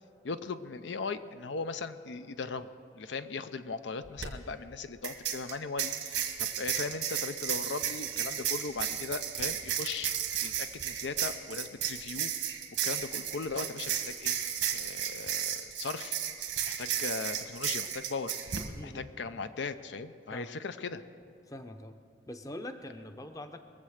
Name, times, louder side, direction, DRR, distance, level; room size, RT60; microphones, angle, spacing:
voice 1, 0.2-2.7 2.9-10.1 10.4-12.6 12.8-14.4 14.7-16.2 16.6-18.3 18.8-21.0, left 4 dB, 85° left, 11 dB, 0.6 m, -38 dB
sound 1, 4.0-4.3 5.0-18.7, right 9 dB, 85° right, 1.4 m, -34 dB
voice 2, 18.7-19.1 20.3-20.5 21.5-22.0 22.3-23.6, left 1 dB, 20° left, 7 dB, 0.6 m, -43 dB
21.5 x 7.6 x 6.4 m, 2.5 s
head